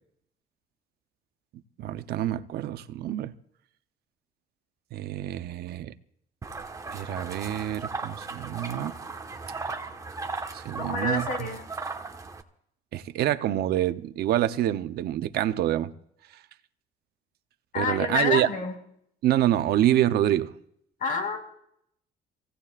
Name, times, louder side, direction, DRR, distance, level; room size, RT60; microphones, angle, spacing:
voice 1, 1.8-3.3 4.9-5.9 6.9-8.9 10.5-11.3 12.9-15.9 17.7-18.5 19.2-20.5, right 12 dB, 70° right, 0.8 m, -26 dB
sound 1, 6.4-12.4, right 3 dB, 20° right, 1.4 m, -36 dB
voice 2, 10.8-11.6 17.7-18.7 21.0-21.4, left 4 dB, 55° left, 5.6 m, -28 dB
26.5 x 17.0 x 2.5 m
cardioid pair, 110°, 17 cm